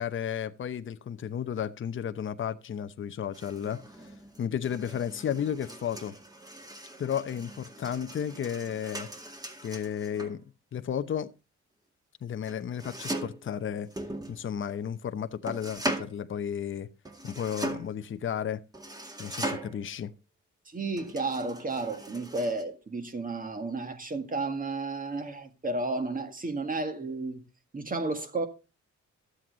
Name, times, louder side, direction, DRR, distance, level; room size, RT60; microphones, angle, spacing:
voice 1, 0.0-3.8 4.4-6.1 7.0-9.1 9.6-10.4 10.7-11.3 12.2-13.9 14.3-16.9 17.2-18.6 19.2-20.1, left 8 dB, 40° left, 0.8 m, -33 dB
sound 1, 3.3-10.4 12.5-13.5 13.9-14.9 15.5-16.2 17.0-18.0 18.7-19.9 21.0-22.6, right 1 dB, 10° right, 2.1 m, -39 dB
voice 2, 20.7-27.4 27.7-28.5, right 3 dB, 30° right, 1.9 m, -32 dB
12.5 x 7.8 x 3.9 m
cardioid pair, 90°, 30 cm